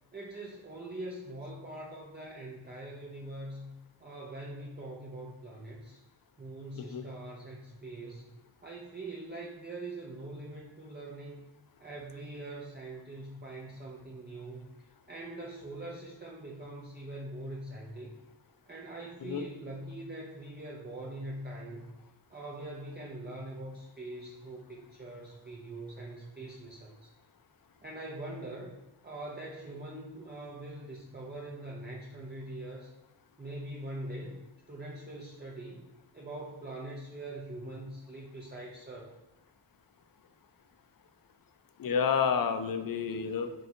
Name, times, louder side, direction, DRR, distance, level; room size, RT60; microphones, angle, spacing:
voice 1, 0.1-3.7 4.0-6.0 6.4-8.3 8.6-11.4 11.8-18.2 18.7-21.9 22.3-27.1 27.8-28.7 29.0-32.9 33.4-34.4 34.7-35.9 36.1-39.1, right 1 dB, 25° right, -2 dB, 0.6 m, -43 dB
voice 2, 41.8-43.5, left 6 dB, 55° left, 9 dB, 0.5 m, -29 dB
4.6 x 2.7 x 4.2 m, 1.1 s
wide cardioid pair, 105°, 42 cm